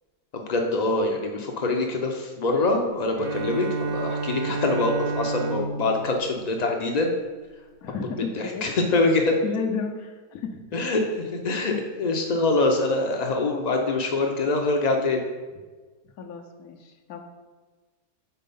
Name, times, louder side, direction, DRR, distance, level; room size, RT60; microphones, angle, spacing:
voice 1, 0.3-7.1 8.3-9.4 10.7-15.2, left 2 dB, 90° left, 2 dB, 0.3 m, -24 dB
Bowed string instrument, 3.1-7.4, right 3 dB, 55° right, 0.8 m, -31 dB
voice 2, 7.8-8.7 9.4-10.8 16.2-17.2, left 5 dB, 75° left, 4 dB, 1.2 m, -33 dB
5.6 x 4.2 x 5.4 m, 1.3 s
omnidirectional pair, 1.6 m